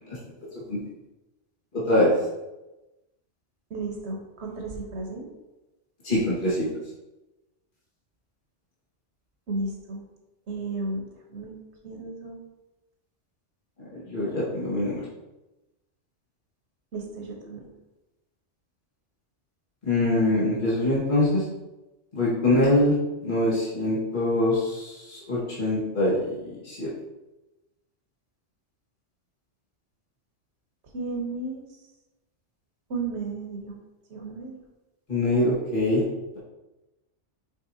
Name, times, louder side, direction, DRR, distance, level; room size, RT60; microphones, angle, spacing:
voice 1, 1.7-2.1 6.0-6.7 13.8-15.0 19.8-21.4 22.1-22.9 23.2-26.9 35.1-36.0, left 1 dB, 45° left, -8 dB, 2.0 m, -24 dB
voice 2, 3.7-5.3 9.5-10.0 10.5-11.0 11.3-11.6 11.8-12.4 16.9-17.6 22.4-22.7 30.9-31.6 32.9-33.8 34.1-34.6, right 3 dB, 70° right, 0 dB, 1.4 m, -33 dB
7.6 x 4.5 x 2.8 m, 1.0 s
omnidirectional pair, 1.2 m